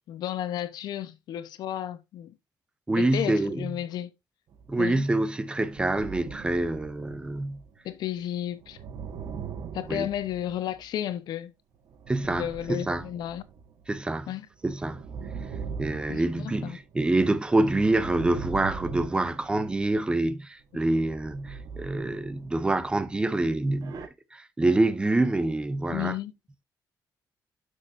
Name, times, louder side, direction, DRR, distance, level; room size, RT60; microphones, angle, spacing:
voice 1, 0.1-2.3 3.0-4.1 4.8-5.0 7.8-8.8 9.7-11.5 12.2-13.4 14.3-14.5 16.1-16.8 25.9-26.3, left 11 dB, 80° left, 1.0 m, -33 dB
voice 2, 2.9-3.7 4.7-7.6 9.9-10.1 12.1-13.0 13.9-14.3 14.6-15.0 15.8-26.1, right 2 dB, 15° right, 0.8 m, -26 dB
sound 1, 4.5-4.9 5.6-7.9 8.5-10.9 11.9-14.0 14.5-16.9 17.4-20.1 20.8-23.1 23.6-24.1, right 6 dB, 60° right, 1.4 m, -41 dB
12.0 x 6.4 x 2.7 m
cardioid pair, 150°, 7 cm